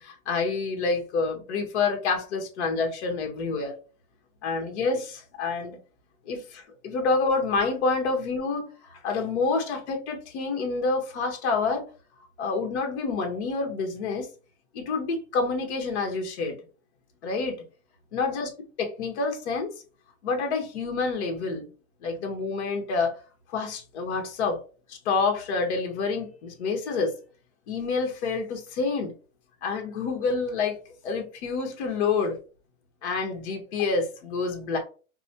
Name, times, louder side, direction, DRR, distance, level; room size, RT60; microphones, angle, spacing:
voice 1, 0.0-3.7 4.4-5.8 6.3-11.8 12.4-14.3 14.7-16.6 17.2-17.6 18.1-18.5 18.8-19.7 20.2-21.6 22.0-23.2 23.5-24.6 24.9-27.1 27.7-29.1 29.6-32.4 33.0-34.8, left 4 dB, 55° left, 1.3 m, -28 dB
5.1 x 2.2 x 2.8 m
supercardioid pair, 175°, 41 cm